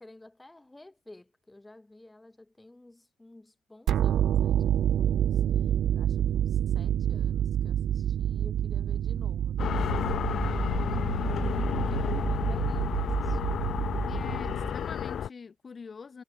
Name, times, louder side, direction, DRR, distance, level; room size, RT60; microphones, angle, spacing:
voice 1, 0.0-5.4 5.9-11.0 11.3-13.6, left 2 dB, 15° left, 3.5 m, -52 dB
sound 1, 3.9-14.8, right 10 dB, 70° right, 0.7 m, -28 dB
sound 2, 9.6-15.3, left 9 dB, 60° left, 0.5 m, -31 dB
voice 2, 14.1-16.2, left 5 dB, 40° left, 2.0 m, -44 dB
cardioid pair, 90°, 0 cm